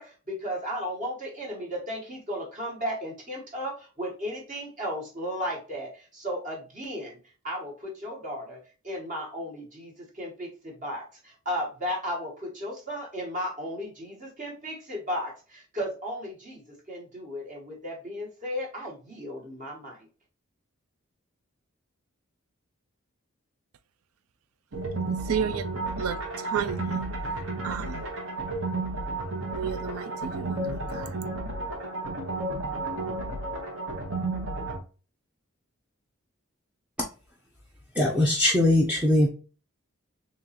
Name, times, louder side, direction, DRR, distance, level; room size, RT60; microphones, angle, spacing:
voice 1, 0.0-7.2 7.4-20.1, equal, 40° right, 1.2 m, -35 dB
sound 1, 24.7-34.8, right 2 dB, 65° right, 1.0 m, -32 dB
voice 2, 25.3-25.7 26.0-26.2 26.5-27.0 27.6-28.0 29.6-31.0, right 7 dB, 90° right, 0.4 m, -31 dB
voice 3, 38.0-39.3, left 1 dB, 5° right, 0.5 m, -21 dB
3.7 x 2.9 x 2.8 m
head